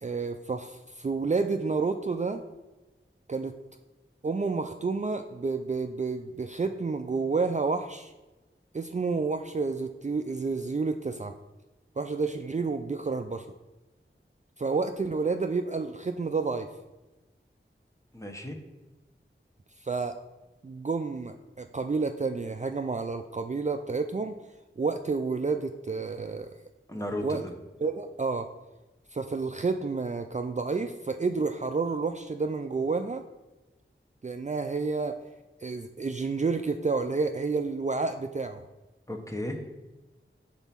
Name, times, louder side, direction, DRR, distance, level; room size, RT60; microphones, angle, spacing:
voice 1, 0.0-2.4 3.3-3.5 4.2-8.1 8.7-11.3 12.0-13.5 14.6-16.7 19.8-20.1 20.6-24.4 24.8-26.5 27.2-27.4 27.8-28.5 29.1-33.2 34.2-35.1 35.6-38.6, right 4 dB, 35° right, 6 dB, 0.4 m, -30 dB
voice 2, 18.1-18.6 26.9-27.5 39.1-39.6, left 1 dB, 15° left, 2 dB, 1.0 m, -34 dB
5.4 x 4.1 x 5.9 m, 1.1 s
wide cardioid pair, 50°, 21 cm